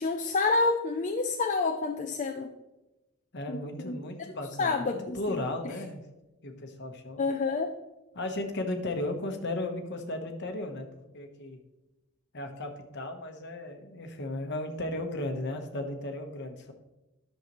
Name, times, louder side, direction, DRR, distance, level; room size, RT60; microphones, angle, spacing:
voice 1, 0.0-2.5 3.5-4.0 4.6-5.4 7.2-7.7, left 3 dB, 35° left, 4 dB, 0.4 m, -28 dB
voice 2, 3.3-6.0 6.4-7.2 8.1-10.9 11.1-11.6 12.3-16.7, left 1 dB, 50° left, 4 dB, 1.1 m, -35 dB
11.0 x 6.6 x 3.0 m, 1.0 s
head